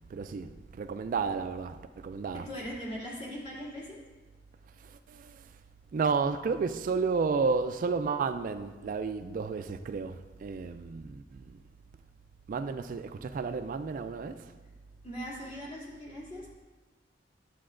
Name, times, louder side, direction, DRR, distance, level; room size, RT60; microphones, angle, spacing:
voice 1, 0.1-2.4 4.8-5.5 5.9-11.6 12.5-14.5, right 5 dB, 50° right, 0.3 m, -32 dB
voice 2, 2.5-4.0 15.0-16.6, equal, 35° left, 2.4 m, -40 dB
11.5 x 7.6 x 2.5 m
head